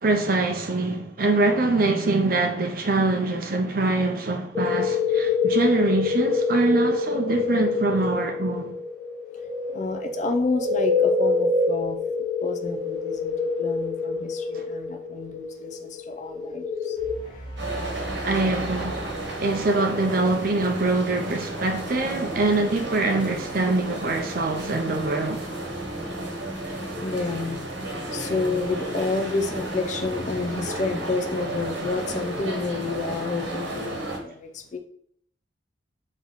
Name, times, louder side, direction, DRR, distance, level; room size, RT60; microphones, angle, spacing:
voice 1, 0.0-8.8 18.2-19.0 19.4-25.4, right 2 dB, 50° right, 0.6 m, -24 dB
sound 1, 4.5-17.1, left 4 dB, 5° left, 1.0 m, -26 dB
voice 2, 9.7-12.0 12.4-17.5 27.0-27.6 28.1-34.8, left 3 dB, 40° left, 0.5 m, -30 dB
sound 2, 17.0-20.3, right 1 dB, 25° left, 1.5 m, -39 dB
sound 3, 17.6-34.2, right 1 dB, 75° right, 1.2 m, -33 dB
4.0 x 3.0 x 4.1 m
head